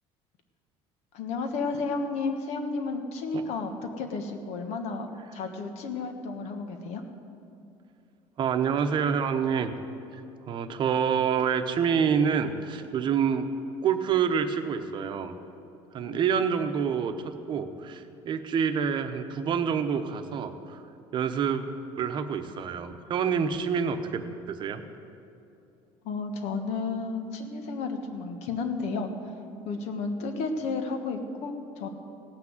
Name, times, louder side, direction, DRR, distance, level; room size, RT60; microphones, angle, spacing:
voice 1, 1.1-3.7 4.0-7.0 26.0-29.1 29.7-31.9, left 4 dB, 65° left, 6 dB, 1.5 m, -32 dB
voice 2, 8.4-9.7 10.1-10.2 10.5-13.5 13.8-15.3 15.9-17.1 17.5-20.8 21.1-21.7 22.0-24.8, right 7 dB, 40° right, 8 dB, 0.9 m, -27 dB
17.0 x 6.0 x 7.9 m, 2.7 s
cardioid pair, 135°, 12 cm